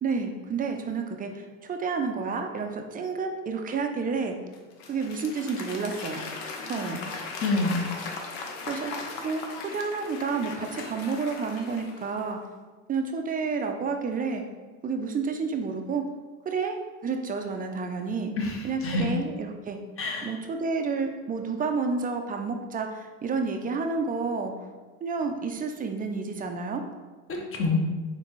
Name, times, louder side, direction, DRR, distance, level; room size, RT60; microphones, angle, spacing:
voice 1, 0.0-4.3 4.9-6.2 6.6-7.0 8.7-8.9 9.2-9.4 9.7-12.4 12.9-14.4 14.8-16.0 16.5-16.8 17.0-18.3 18.6-19.8 20.2-24.5 25.0-26.8, right 4 dB, 20° right, 5 dB, 0.4 m, -30 dB
Applause / Crowd, 4.5-12.3, left 4 dB, 70° left, 0.8 m, -38 dB
voice 2, 6.6-7.0 7.4-7.9 18.4-19.1 20.0-20.3 27.3-27.8, left 3 dB, 30° left, 1 dB, 0.9 m, -28 dB
4.0 x 3.5 x 3.0 m, 1.3 s
hypercardioid pair, 85°, 40 cm